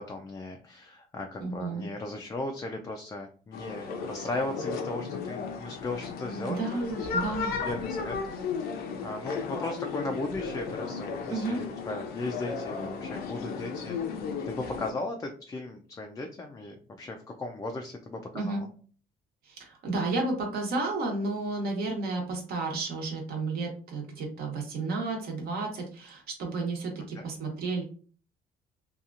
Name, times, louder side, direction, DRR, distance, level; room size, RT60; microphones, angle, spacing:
voice 1, 0.0-6.6 7.0-7.1 7.4-8.2 8.6-18.7 27.2-27.3, left 2 dB, 20° left, 3 dB, 0.4 m, -37 dB
voice 2, 1.4-1.8 6.5-7.5 11.3-11.6 18.3-18.6 19.4-27.8, right 3 dB, 65° right, 1 dB, 1.1 m, -32 dB
sound 1, 3.5-14.9, left 5 dB, 65° left, 0.6 m, -35 dB
2.8 x 2.3 x 2.5 m, 0.42 s
cardioid pair, 110°, 17 cm